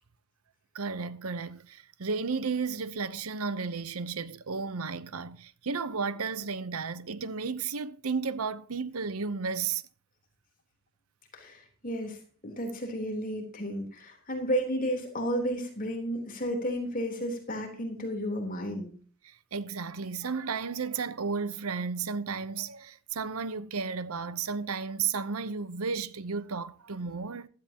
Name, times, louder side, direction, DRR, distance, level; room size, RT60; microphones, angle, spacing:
voice 1, 0.7-9.8 19.2-27.5, right 5 dB, 90° right, 0.8 m, -33 dB
voice 2, 11.3-12.2 12.4-18.9, equal, 40° left, 3.6 m, -32 dB
15.5 x 13.0 x 2.9 m
head